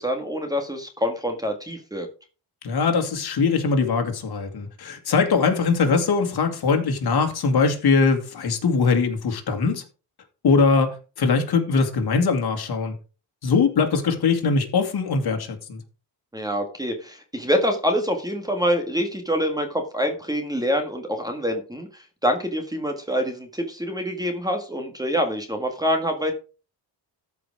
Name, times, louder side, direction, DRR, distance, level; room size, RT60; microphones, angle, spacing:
voice 1, 0.0-2.1 16.3-26.3, equal, 10° right, 1.7 m, -26 dB
voice 2, 2.6-9.8 10.4-13.0 13.4-15.8, left 4 dB, 60° left, 2.3 m, -21 dB
13.5 x 5.0 x 4.8 m
wide cardioid pair, 135°, 44 cm